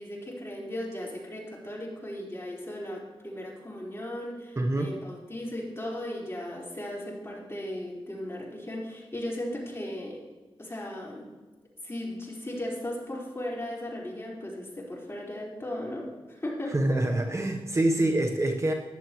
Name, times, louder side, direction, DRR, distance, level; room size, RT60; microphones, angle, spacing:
voice 1, 0.0-10.2 10.6-11.3 11.8-16.8, left 1 dB, 25° left, -4 dB, 4.4 m, -36 dB
voice 2, 4.6-4.9 16.7-18.7, right 1 dB, 30° right, 4 dB, 1.0 m, -25 dB
14.5 x 11.0 x 3.1 m, 1.2 s
cardioid pair, 65°, 10 cm